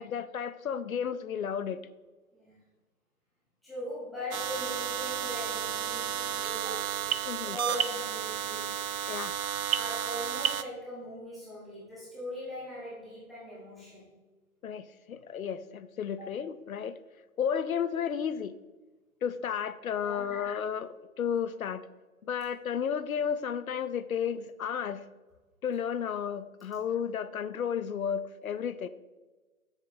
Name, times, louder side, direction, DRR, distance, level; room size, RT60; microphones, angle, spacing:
voice 1, 0.0-1.8 7.3-7.6 9.1-9.3 14.6-17.0 17.4-18.6 19.2-21.9 22.2-25.0 25.6-28.9, left 7 dB, 70° left, 14 dB, 0.6 m, -33 dB
voice 2, 3.6-7.0 7.4-8.8 9.7-14.1 16.2-16.3 19.9-20.3, left 1 dB, ahead, -11 dB, 1.0 m, -40 dB
sound 1, 4.3-10.6, right 9 dB, 70° right, 0.6 m, -32 dB
8.1 x 7.1 x 2.7 m, 1.2 s
hypercardioid pair, 155°, 44 cm